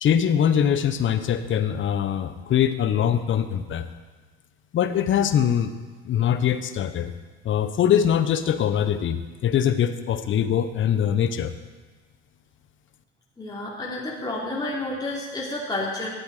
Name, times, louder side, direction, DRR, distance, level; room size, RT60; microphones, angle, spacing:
voice 1, 0.0-3.9 4.7-5.7 6.0-7.1 7.4-11.5, left 9 dB, 40° left, 11 dB, 0.9 m, -22 dB
voice 2, 13.4-16.1, left 2 dB, 15° left, -5 dB, 2.8 m, -30 dB
12.0 x 8.0 x 4.9 m, 1.3 s
hypercardioid pair, 80°, 29 cm